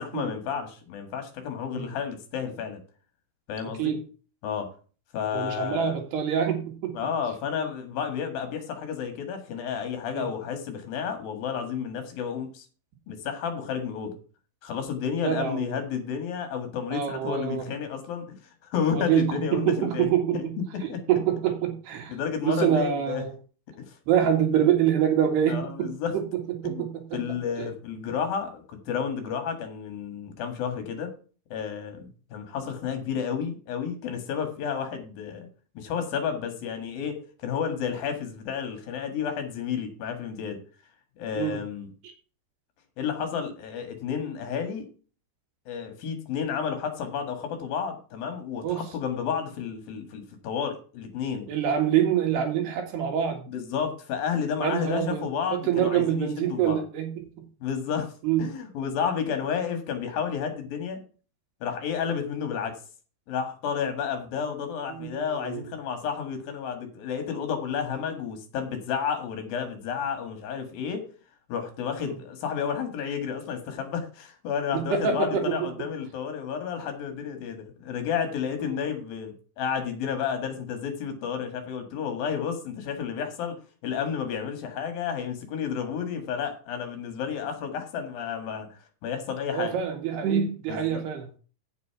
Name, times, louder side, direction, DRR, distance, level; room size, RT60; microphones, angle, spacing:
voice 1, 0.0-2.8 3.5-4.0 4.4-4.7 5.1-6.0 6.9-12.7 13.1-14.2 14.6-20.4 20.9-21.0 22.1-23.2 23.8-23.9 25.5-26.1 26.6-26.9 27.1-31.1 31.5-35.5 35.8-40.6 41.2-41.9 43.0-44.9 45.7-51.5 53.5-56.8 57.6-58.1 58.4-61.0 61.6-62.7 63.3-71.0 71.5-83.6 83.8-88.7 89.0-89.8 90.7-91.0, left 7 dB, 65° left, 7 dB, 3.5 m, -31 dB
voice 2, 3.6-4.0 5.3-7.0 10.1-10.3 15.2-15.7 16.9-17.7 18.9-20.6 20.8-22.2 22.4-23.3 24.1-26.2 26.6-27.2 27.6-27.7 41.4-41.6 42.0-42.1 48.6-48.8 51.5-53.5 54.6-57.1 58.2-58.5 64.9-65.7 72.0-72.2 74.7-75.7 78.6-78.8 89.5-91.3, right 9 dB, 90° right, 3 dB, 4.0 m, -26 dB
8.4 x 7.5 x 5.8 m, 0.37 s
omnidirectional pair, 4.6 m